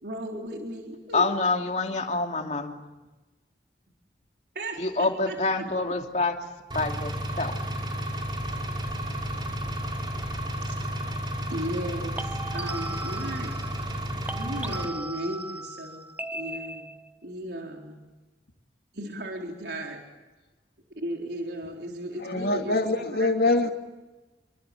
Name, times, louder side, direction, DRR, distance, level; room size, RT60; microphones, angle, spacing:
voice 1, 0.0-1.3 4.5-5.7 10.6-10.9 11.5-13.6 14.0-16.9 17.2-18.0 18.9-20.0 21.0-22.7 23.2-23.5, right 1 dB, 70° right, 4.1 m, -36 dB
voice 2, 1.1-2.8 4.8-6.4 6.7-7.5, left 3 dB, 40° left, 2.8 m, -27 dB
Engine, 6.7-14.9, equal, 25° right, 4.9 m, -32 dB
sound 1, 12.2-14.0 14.3-17.2, right 2 dB, 10° right, 1.1 m, -38 dB
voice 3, 22.1-23.7, left 2 dB, 60° left, 2.7 m, -24 dB
29.0 x 23.5 x 8.5 m
head